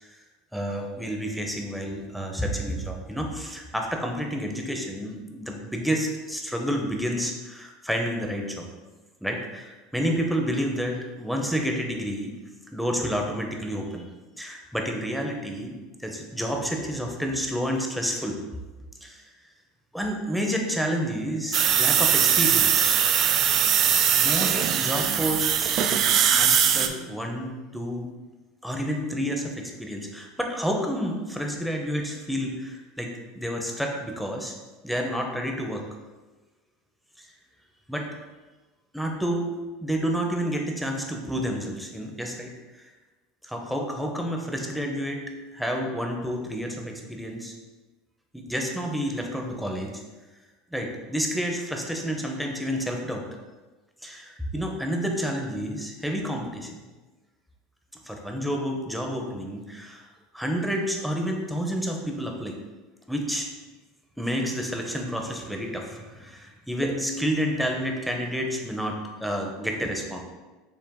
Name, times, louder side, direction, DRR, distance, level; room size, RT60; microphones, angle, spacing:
voice 1, 0.5-8.7 9.2-12.3 12.7-14.1 14.4-18.4 19.0-19.2 19.9-23.0 24.2-28.1 28.6-34.6 34.8-35.8 37.2-37.3 37.9-38.1 38.9-39.5 39.8-42.5 42.8-42.9 43.4-45.2 45.5-47.5 48.3-50.0 50.7-53.2 54.0-56.8 58.0-60.1 60.3-62.6 63.1-63.5 64.2-70.2, equal, ahead, 1 dB, 0.7 m, -30 dB
sound 1, 21.5-26.9, right 9 dB, 50° right, 0.3 m, -21 dB
5.8 x 3.3 x 2.2 m, 1.2 s
hypercardioid pair, 85°, 0 cm